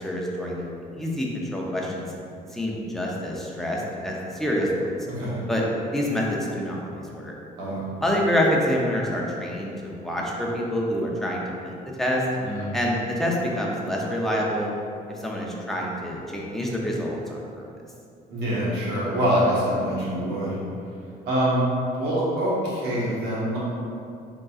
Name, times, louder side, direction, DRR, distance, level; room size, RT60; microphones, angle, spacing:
voice 1, 0.0-2.1 2.5-5.0 5.5-5.6 5.9-7.3 8.0-12.2 12.7-14.7 15.1-17.7, equal, ahead, -3 dB, 0.6 m, -27 dB
voice 2, 7.6-7.9 12.4-12.7 18.3-20.6 21.2-21.6 22.0-23.6, equal, 80° right, -7 dB, 1.3 m, -25 dB
3.7 x 3.7 x 2.4 m, 2.5 s
cardioid pair, 110°, 17 cm